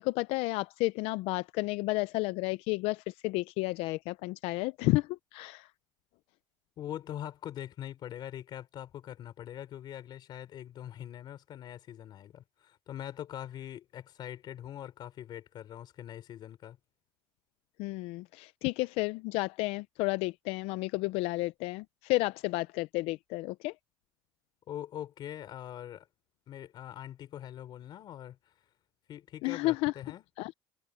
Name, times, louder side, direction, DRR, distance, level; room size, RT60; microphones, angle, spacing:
voice 1, 0.0-5.7 17.8-23.7 29.4-29.9 30.4-30.5, left 21 dB, 85° left, 0.4 m, -31 dB
voice 2, 6.8-16.8 24.7-26.1 26.5-28.4 29.1-30.2, left 11 dB, 50° left, 3.6 m, -43 dB
cardioid pair, 150°, 10 cm